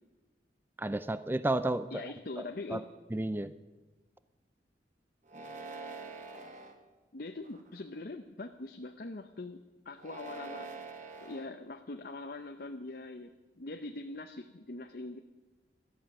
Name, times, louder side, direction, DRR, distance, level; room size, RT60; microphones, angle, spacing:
voice 1, 0.8-2.0 2.4-2.9 3.1-3.5, right 2 dB, 10° right, 13 dB, 0.4 m, -32 dB
voice 2, 1.9-2.8 7.1-9.6 9.9-10.7 11.2-13.3 13.6-15.2, left 2 dB, 55° left, 6 dB, 0.7 m, -42 dB
sound 1, 5.3-6.7 7.4-8.0 9.9-11.4, right 3 dB, 40° right, 1.7 m, -45 dB
18.0 x 13.0 x 6.1 m, 1.2 s
head